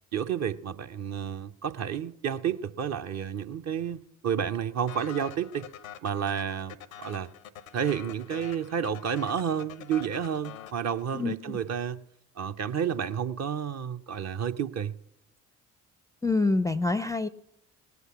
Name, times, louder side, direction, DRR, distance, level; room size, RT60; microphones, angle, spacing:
voice 1, 0.1-5.7 6.0-7.3 7.7-12.0 12.4-14.9, right 8 dB, 40° right, 0.7 m, -31 dB
sound 1, 4.9-11.5, left 10 dB, 90° left, 0.7 m, -46 dB
voice 2, 16.2-17.3, left 3 dB, 10° left, 0.4 m, -26 dB
19.0 x 8.2 x 5.9 m
hypercardioid pair, 50°, 40 cm